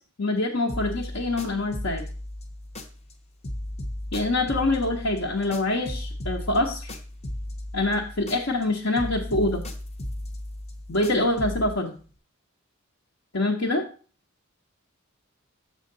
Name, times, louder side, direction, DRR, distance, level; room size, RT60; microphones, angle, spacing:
voice 1, 0.2-2.0 4.1-7.0 7.7-9.6 10.9-12.0 13.3-13.8, left 2 dB, 70° left, -2 dB, 1.0 m, -25 dB
sound 1, 0.7-3.2 3.4-8.7 9.0-11.8, left 1 dB, 30° left, 0.7 m, -35 dB
6.5 x 6.4 x 3.8 m, 0.39 s
head